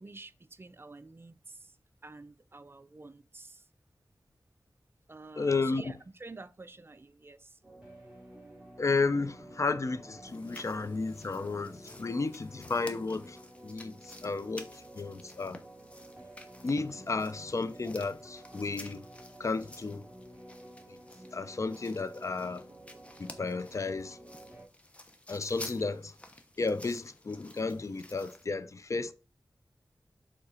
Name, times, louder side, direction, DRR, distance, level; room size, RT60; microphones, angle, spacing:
voice 1, 0.0-1.7 2.0-3.6 5.1-7.6 17.0-17.1, right 2 dB, 35° right, 0.5 m, -49 dB
voice 2, 5.4-5.9 8.8-15.6 16.6-19.0 19.4-20.1 20.9-21.0 21.3-22.6 23.2-24.2 25.3-26.1 26.6-29.1, left 3 dB, 50° left, 0.5 m, -33 dB
sound 1, 7.6-24.7, right 1 dB, 10° right, 2.4 m, -51 dB
sound 2, 10.3-28.5, left 1 dB, 20° left, 0.9 m, -52 dB
6.8 x 3.8 x 4.2 m
wide cardioid pair, 85°, 7 cm